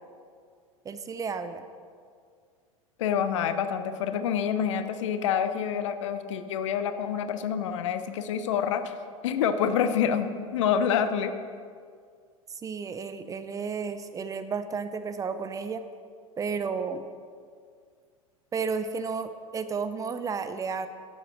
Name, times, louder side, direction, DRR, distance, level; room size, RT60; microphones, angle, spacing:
voice 1, 0.8-1.6 12.6-15.8 16.4-17.1 18.5-20.9, right 5 dB, 20° right, 10 dB, 0.6 m, -32 dB
voice 2, 3.0-9.0 9.2-11.3, left 8 dB, 55° left, 10 dB, 0.9 m, -27 dB
11.5 x 7.9 x 6.3 m, 2.1 s
figure-of-eight pair, 85°, 18 cm